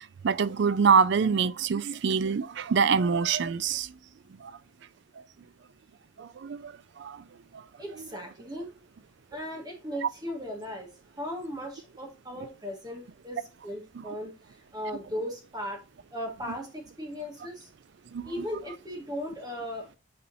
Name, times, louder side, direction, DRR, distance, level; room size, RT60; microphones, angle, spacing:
voice 1, 0.2-3.9 6.2-6.7 7.0-7.2 18.1-18.3, right 6 dB, 55° right, 0.4 m, -25 dB
voice 2, 7.8-8.7 9.3-10.9 11.2-15.8 16.1-17.7 18.2-19.9, equal, 20° right, 1.8 m, -37 dB
8.4 x 4.2 x 2.7 m
head